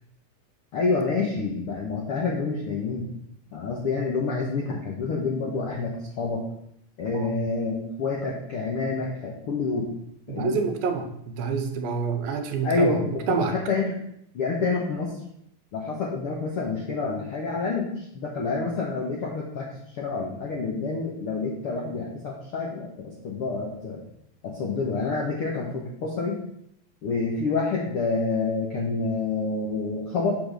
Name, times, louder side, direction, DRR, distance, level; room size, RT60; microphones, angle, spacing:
voice 1, 0.7-3.1 3.5-6.4 7.0-9.9 10.3-10.6 12.6-14.0 14.3-15.2 15.7-24.0 24.4-26.4 27.0-30.4, left 4 dB, 70° left, -2 dB, 1.3 m, -28 dB
voice 2, 10.3-13.0 13.3-13.6, right 5 dB, 80° right, 6 dB, 2.7 m, -27 dB
7.7 x 4.0 x 6.6 m, 0.73 s
omnidirectional pair, 4.2 m